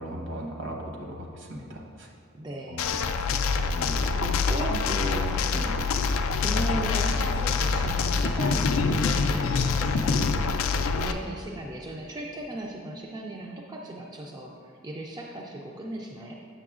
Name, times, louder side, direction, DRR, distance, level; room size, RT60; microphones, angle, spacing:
voice 1, 0.0-2.1 2.7-3.1 3.7-4.0 4.7-5.7, equal, 65° right, -1 dB, 1.0 m, -36 dB
voice 2, 2.3-3.2 4.1-5.3 6.0-16.3, right 1 dB, 20° right, -1 dB, 0.4 m, -37 dB
sound 1, 2.8-11.1, left 4 dB, 70° left, 0.4 m, -25 dB
7.7 x 6.7 x 2.4 m, 2.3 s
head